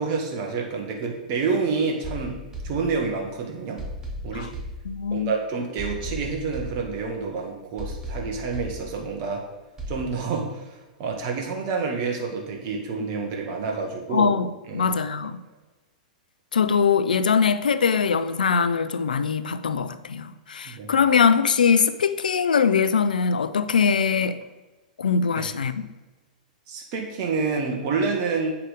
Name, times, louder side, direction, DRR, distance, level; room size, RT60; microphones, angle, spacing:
voice 1, 0.0-2.4 2.6-3.8 4.2-4.5 5.1-9.4 9.9-14.3 14.7-14.9 20.6-20.9 25.3-25.5 26.7-28.5, right 4 dB, 45° right, 1.5 m, -28 dB
sound 1, 2.0-3.3 3.8-5.3 5.8-7.3 7.8-9.3 9.8-10.0, equal, 15° right, 2.3 m, -36 dB
voice 2, 4.8-5.3 14.1-15.4 16.5-24.4 25.0-25.9, left 6 dB, 80° left, 0.5 m, -22 dB
8.1 x 5.8 x 5.0 m
hypercardioid pair, 110°, 4 cm